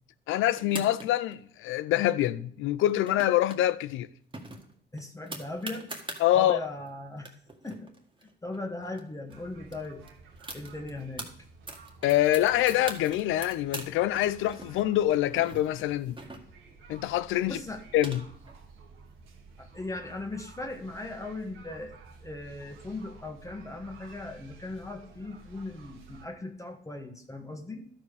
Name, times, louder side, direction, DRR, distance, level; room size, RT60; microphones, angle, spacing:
voice 1, 0.3-4.1 6.2-6.6 12.0-16.2 16.9-17.6 17.9-18.3, left 13 dB, 90° left, 0.5 m, -25 dB
sound 1, 0.6-1.3 2.8-3.6 3.9-4.0 4.3-6.2 6.9-7.0 7.2-9.0 9.3-9.4 9.7-11.3 11.7-13.9 14.2-16.8 17.6-18.5, right 2 dB, 25° right, 1.8 m, -42 dB
voice 2, 4.9-6.0 6.3-7.3 7.6-7.9 8.2-10.0 10.5-11.3 17.4-17.8 19.6-27.9, left 2 dB, 15° left, 1.4 m, -38 dB
sound 2, 9.3-26.2, right 4 dB, 85° right, 1.8 m, -52 dB
12.0 x 5.2 x 6.6 m
cardioid pair, 90°, 20 cm